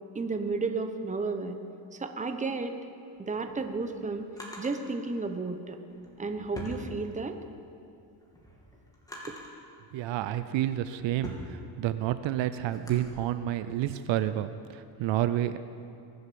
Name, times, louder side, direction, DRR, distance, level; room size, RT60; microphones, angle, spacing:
voice 1, 0.1-1.6 2.0-2.7 3.2-4.3 4.6-5.8 6.2-7.4, right 3 dB, 15° right, 7 dB, 1.0 m, -32 dB
Drawer open or close, 3.2-4.8 5.8-7.5 7.9-9.6 10.3-13.1, equal, 10° left, 2.9 m, -45 dB
voice 2, 9.9-15.6, right 12 dB, 70° right, 12 dB, 0.7 m, -30 dB
22.0 x 7.9 x 7.0 m, 2.6 s
cardioid pair, 120°, 47 cm